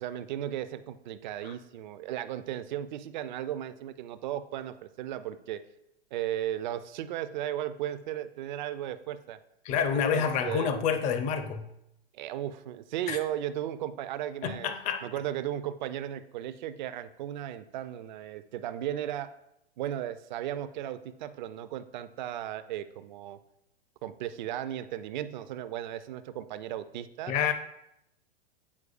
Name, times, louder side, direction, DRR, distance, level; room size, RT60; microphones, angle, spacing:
voice 1, 0.0-5.6 6.1-9.4 9.9-10.7 12.1-14.7 15.0-19.3 19.8-23.4 24.0-27.3, right 11 dB, 50° right, 0.5 m, -35 dB
voice 2, 9.6-11.6 13.1-13.2 14.4-15.1 27.3-27.5, left 7 dB, 25° left, 0.5 m, -28 dB
8.4 x 4.5 x 2.5 m
figure-of-eight pair, 105°, 31 cm